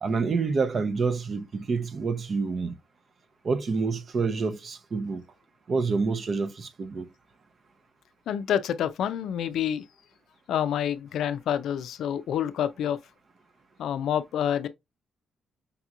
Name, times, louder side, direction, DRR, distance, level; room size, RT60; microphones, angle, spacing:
voice 1, 0.0-2.8 3.4-5.2 5.7-7.1, right 4 dB, 45° right, 0.6 m, -27 dB
voice 2, 8.3-9.8 10.5-13.0 13.8-14.7, left 9 dB, 75° left, 0.4 m, -28 dB
5.2 x 2.9 x 2.4 m
cardioid pair, 90°, 0 cm